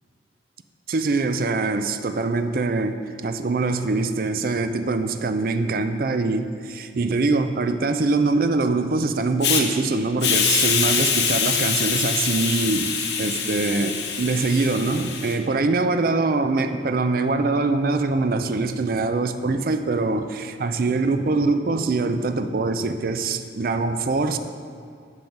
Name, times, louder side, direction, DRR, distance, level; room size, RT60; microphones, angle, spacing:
voice 1, 0.9-24.4, right 3 dB, 50° right, 9 dB, 0.4 m, -23 dB
Hiss, 9.4-9.6 10.2-15.3, left 6 dB, 70° left, 0.8 m, -24 dB
9.3 x 5.3 x 4.5 m, 2.4 s
head